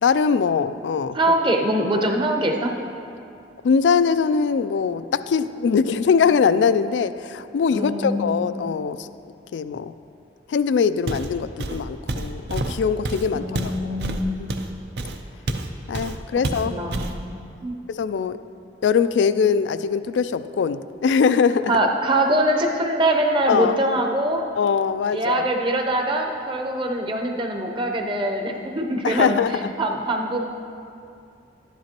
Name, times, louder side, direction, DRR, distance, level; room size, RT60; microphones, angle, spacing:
voice 1, 0.0-1.2 3.6-9.1 9.5-9.9 10.5-13.9 15.9-17.0 17.9-18.4 18.8-21.8 23.5-23.8 24.6-25.5 29.0-29.7, left 6 dB, 90° left, 14 dB, 0.3 m, -22 dB
voice 2, 1.1-2.7 7.7-8.4 13.3-14.4 16.6-17.7 21.7-24.4 25.1-29.4 29.8-30.4, right 1 dB, 30° right, 2 dB, 0.8 m, -23 dB
Walk footsteps, 11.1-11.3 11.6-15.7 15.9-16.2 16.4-17.2, right 2 dB, 65° right, 0.6 m, -28 dB
11.5 x 10.5 x 3.0 m, 2.5 s
head